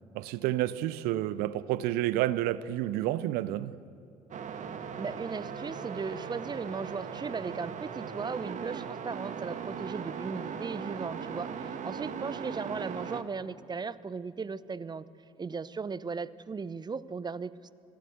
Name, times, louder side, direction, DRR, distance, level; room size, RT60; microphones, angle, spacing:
voice 1, 0.1-3.8, right 14 dB, 65° right, 0.7 m, -30 dB
sound 1, 4.3-13.2, right 7 dB, 45° right, 1.5 m, -39 dB
voice 2, 5.0-15.0 15.4-17.7, right 5 dB, 25° right, 0.8 m, -37 dB
25.5 x 15.5 x 8.0 m
hypercardioid pair, 55°, 17 cm